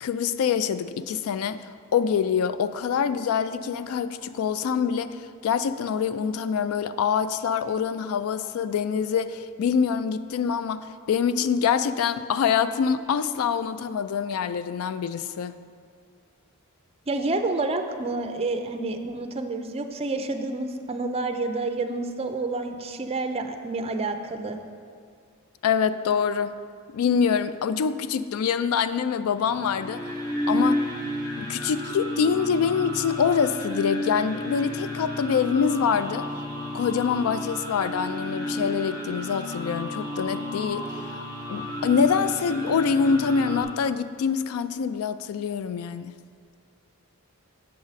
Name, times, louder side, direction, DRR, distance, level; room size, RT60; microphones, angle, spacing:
voice 1, 0.0-15.6 25.6-26.6 26.9-30.9 31.4-36.3 36.7-46.2, left 6 dB, 70° left, 0.3 m, -25 dB
voice 2, 17.1-24.6, right 3 dB, 25° right, 0.4 m, -29 dB
sound 1, 29.4-43.6, left 1 dB, 15° left, 0.9 m, -31 dB
7.8 x 6.3 x 4.0 m
head